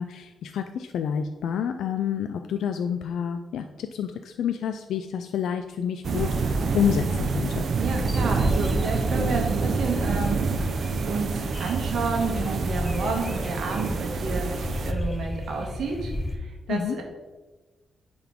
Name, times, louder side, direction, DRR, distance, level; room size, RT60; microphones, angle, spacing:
voice 1, 0.0-7.7 16.7-17.0, left 8 dB, 90° left, 7 dB, 0.3 m, -29 dB
sound 1, 6.0-14.9, right 4 dB, 55° right, 0.5 m, -27 dB
voice 2, 7.8-10.7 11.1-14.5 14.8-16.1 16.4-17.0, right 4 dB, 75° right, 2 dB, 1.4 m, -30 dB
sound 2, 8.1-16.4, left 1 dB, 15° left, 0.8 m, -33 dB
10.0 x 3.9 x 3.6 m, 1.3 s
cardioid pair, 115°, 0 cm